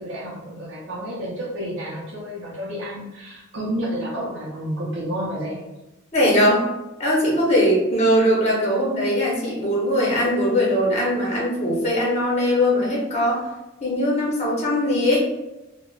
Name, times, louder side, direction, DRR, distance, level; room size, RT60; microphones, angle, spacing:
voice 1, 0.0-5.6, equal, 60° right, -6 dB, 0.6 m, -30 dB
voice 2, 6.1-6.7 7.0-13.5 13.8-15.2, equal, 30° left, -4 dB, 0.8 m, -20 dB
3.3 x 2.1 x 2.4 m, 0.99 s
head